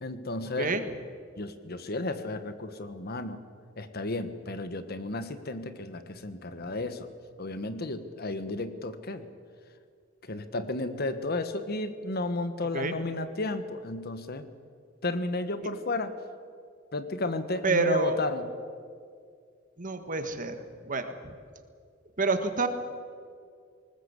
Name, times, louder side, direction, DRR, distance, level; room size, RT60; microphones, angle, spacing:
voice 1, 0.0-0.8 1.4-3.4 3.8-7.1 7.4-9.3 10.2-14.4 15.0-16.1 16.9-18.5, left 2 dB, 50° left, 11 dB, 1.3 m, -33 dB
voice 2, 17.6-18.2 19.8-20.5 20.8-21.3 22.2-22.7, right 3 dB, 45° right, 8 dB, 1.6 m, -27 dB
20.0 x 20.0 x 8.2 m, 2.2 s
head